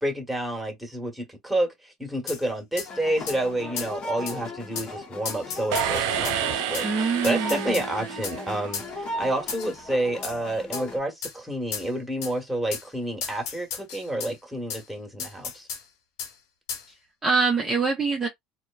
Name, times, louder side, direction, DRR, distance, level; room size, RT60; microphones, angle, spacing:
voice 1, 0.0-15.7, right 1 dB, 5° right, 1.4 m, -29 dB
sound 1, 2.3-2.4 2.8-2.9 3.3-3.4 3.8-3.9 4.3-4.4 4.8-4.9 5.3-6.4 6.7-6.9 7.2-7.9 8.2-8.4 8.7-8.9 9.5-9.8 10.2-10.4 10.7-10.9 11.2-11.4 11.7-11.9 12.2-12.3 12.7-12.9 13.2-14.3 14.7-14.8 15.2-15.8 16.2-16.3 16.7-16.9, left 6 dB, 85° left, 1.1 m, -34 dB
sound 2, 2.8-11.0, left 1 dB, 45° left, 0.9 m, -36 dB
sound 3, 5.7-8.9, right 9 dB, 75° right, 0.4 m, -29 dB
voice 2, 6.8-7.8 17.2-18.3, right 4 dB, 20° right, 0.8 m, -24 dB
2.9 x 2.2 x 2.3 m
hypercardioid pair, 80°, 2 cm